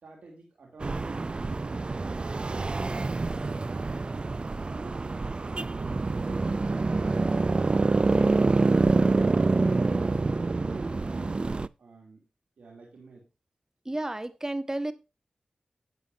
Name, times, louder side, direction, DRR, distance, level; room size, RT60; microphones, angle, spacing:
voice 1, 0.0-4.2 4.7-5.3 5.8-6.7 8.8-9.4 9.8-12.3 12.6-13.3, right 3 dB, 85° right, -1 dB, 3.0 m, -48 dB
sound 1, 0.8-11.7, right 3 dB, 45° right, 0.5 m, -26 dB
voice 2, 13.8-14.9, right 1 dB, 25° right, 12 dB, 1.4 m, -31 dB
12.5 x 9.4 x 2.7 m, 0.28 s
cardioid pair, 40°, 2 cm